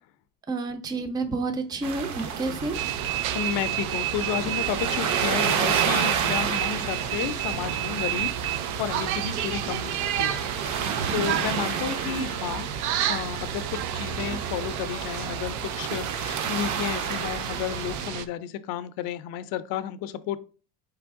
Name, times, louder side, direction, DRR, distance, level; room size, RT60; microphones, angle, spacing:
voice 1, 0.5-2.8, right 3 dB, 10° right, 0.5 m, -29 dB
sound 1, 1.8-18.1, right 6 dB, 50° right, 0.7 m, -31 dB
sound 2, 2.7-18.3, right 12 dB, 85° right, 0.6 m, -31 dB
voice 2, 3.3-8.3 8.8-10.4 11.1-12.7 13.0-13.6 13.9-20.4, left 10 dB, 60° left, 0.5 m, -32 dB
4.3 x 3.3 x 3.5 m
cardioid pair, 120°, 39 cm